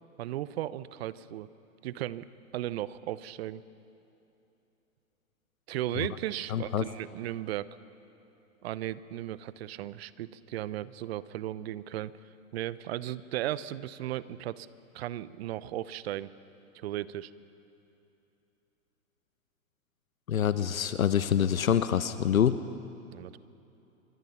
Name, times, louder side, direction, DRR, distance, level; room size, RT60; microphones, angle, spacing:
voice 1, 0.2-1.5 1.8-2.3 2.5-3.6 5.7-7.8 8.6-12.1 12.5-14.7 14.9-16.3 16.7-17.3 23.1-23.4, right 13 dB, 45° right, 17 dB, 0.9 m, -36 dB
voice 2, 6.5-6.8 20.3-22.6, left 9 dB, 75° left, 12 dB, 1.0 m, -26 dB
25.0 x 24.5 x 5.8 m, 2.9 s
figure-of-eight pair, 115°, 42 cm